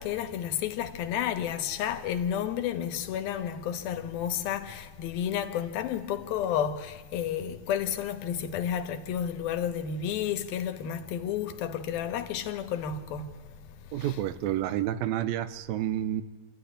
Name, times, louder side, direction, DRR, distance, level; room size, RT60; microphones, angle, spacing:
voice 1, 0.0-13.4 14.0-14.2, left 9 dB, 80° left, 3.0 m, -31 dB
voice 2, 13.9-16.2, right 12 dB, 90° right, 2.7 m, -29 dB
27.0 x 14.5 x 9.9 m
omnidirectional pair, 4.2 m